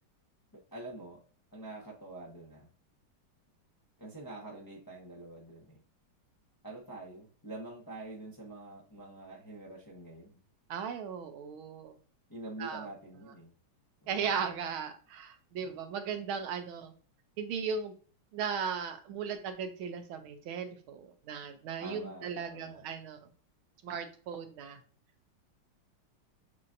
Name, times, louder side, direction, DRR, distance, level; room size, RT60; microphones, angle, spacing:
voice 1, 0.7-1.2 1.5-2.7 4.0-5.8 6.6-10.4 12.3-13.5 14.0-14.7 15.6-15.7 21.8-22.8 23.9-24.0, right 2 dB, 25° left, -4 dB, 0.5 m, -46 dB
voice 2, 10.7-11.9 12.6-12.9 14.1-16.9 17.4-17.9 18.3-23.2 23.8-24.8, right 6 dB, 80° right, 7 dB, 1.5 m, -37 dB
6.8 x 2.8 x 2.5 m, 0.42 s
omnidirectional pair, 2.3 m